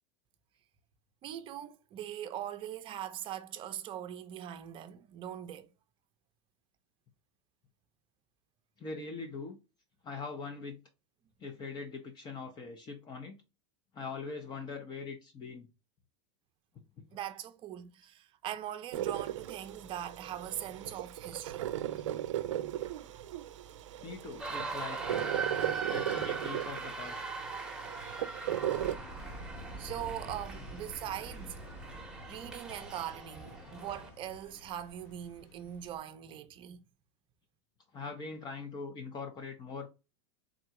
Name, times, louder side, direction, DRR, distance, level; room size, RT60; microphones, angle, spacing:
voice 1, 1.2-5.7 17.1-21.7 23.1-23.2 29.8-31.6 32.3-36.8, right 11 dB, 35° right, 0.5 m, -41 dB
voice 2, 8.8-9.6 10.0-10.8 11.4-13.4 13.9-15.7 16.7-17.0 22.0-22.1 24.0-25.4 25.9-27.2 33.5-33.6 37.9-39.9, left 4 dB, 30° left, 0.6 m, -42 dB
sound 1, 18.9-28.9, right 12 dB, 85° right, 0.4 m, -37 dB
sound 2, 24.4-34.1, right 4 dB, 5° right, 0.9 m, -41 dB
sound 3, 28.7-36.0, right 1 dB, 45° left, 1.2 m, -48 dB
3.7 x 2.2 x 2.9 m
supercardioid pair, 120°, 15 cm